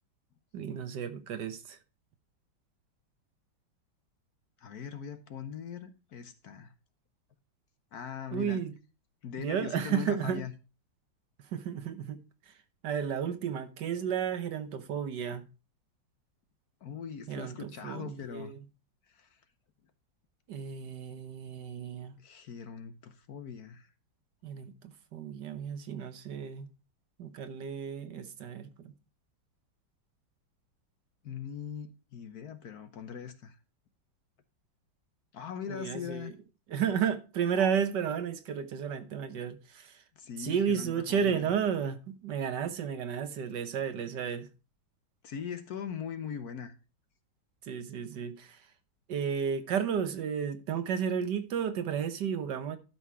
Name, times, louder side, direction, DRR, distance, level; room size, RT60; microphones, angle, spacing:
voice 1, 0.5-1.8 8.3-8.7 9.4-10.4 11.5-12.2 12.8-15.4 17.3-18.6 20.5-22.2 24.4-24.7 25.1-26.7 27.2-28.9 35.7-36.3 36.7-39.9 40.4-44.5 47.7-48.6 49.1-52.8, right 7 dB, 65° right, 1.5 m, -32 dB
voice 2, 4.6-6.7 7.9-8.6 9.2-10.5 16.8-18.5 19.1-19.4 22.2-23.9 31.2-33.6 35.3-36.3 40.2-41.5 45.2-46.7, left 7 dB, 60° left, 1.2 m, -41 dB
12.0 x 5.8 x 4.4 m
omnidirectional pair, 2.1 m